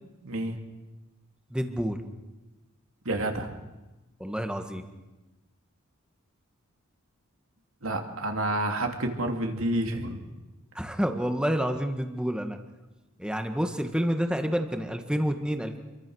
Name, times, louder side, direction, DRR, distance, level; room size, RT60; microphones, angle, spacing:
voice 1, 0.2-0.6 3.0-3.5 7.8-10.2, right 1 dB, 70° right, 3 dB, 2.9 m, -29 dB
voice 2, 1.5-2.0 4.2-4.9 10.8-12.6 13.2-15.8, equal, 5° right, 6 dB, 1.6 m, -28 dB
28.5 x 23.0 x 6.4 m, 1.1 s
head